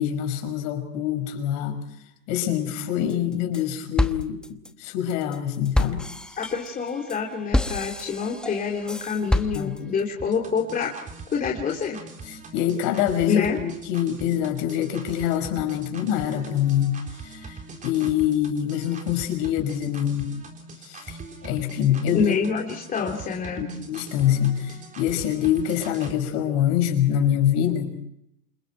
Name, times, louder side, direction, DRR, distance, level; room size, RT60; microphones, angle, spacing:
voice 1, 0.0-1.8 2.3-4.4 4.8-6.0 9.5-9.8 12.5-16.9 17.3-17.6 17.8-20.3 20.9-22.3 23.6-27.9, left 10 dB, 45° left, 6 dB, 5.7 m, -25 dB
sound 1, 3.1-3.6 4.0-10.0, left 1 dB, ahead, 1.0 m, -28 dB
voice 2, 6.4-10.9 11.3-12.0 13.3-13.6 22.1-23.7, left 6 dB, 20° left, -1 dB, 3.1 m, -26 dB
sound 2, 10.2-26.2, right 3 dB, 20° right, 4.1 m, -42 dB
29.0 x 28.0 x 4.7 m, 0.77 s
hypercardioid pair, 120°, 43 cm